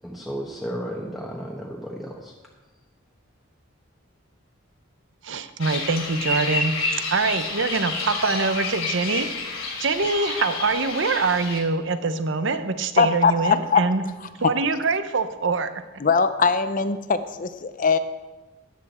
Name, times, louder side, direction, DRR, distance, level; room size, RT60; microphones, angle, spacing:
voice 1, 0.0-2.3, equal, ahead, -3 dB, 1.2 m, -33 dB
voice 2, 5.2-14.0 14.4-15.7, right 4 dB, 65° right, 10 dB, 0.8 m, -24 dB
sound 1, 5.6-11.6, left 3 dB, 85° left, 3.1 m, -29 dB
voice 3, 13.0-13.8 16.0-18.0, left 5 dB, 40° left, 11 dB, 0.6 m, -21 dB
13.5 x 10.0 x 4.3 m, 1.2 s
head